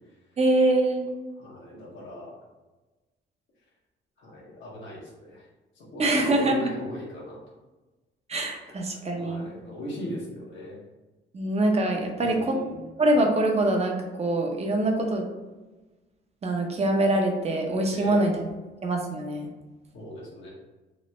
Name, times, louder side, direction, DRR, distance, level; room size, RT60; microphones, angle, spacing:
voice 1, 0.4-1.1 6.0-6.7 8.3-9.5 11.3-12.6 13.0-15.2 16.4-18.5 18.8-19.5, right 1 dB, 30° right, 2 dB, 0.6 m, -24 dB
voice 2, 1.4-2.3 4.2-5.5 5.8-7.4 8.6-10.8 12.2-12.9 17.9-18.3 19.9-20.5, left 1 dB, 70° left, -5 dB, 1.0 m, -39 dB
3.0 x 2.1 x 3.0 m, 1.2 s
cardioid pair, 90°, 20 cm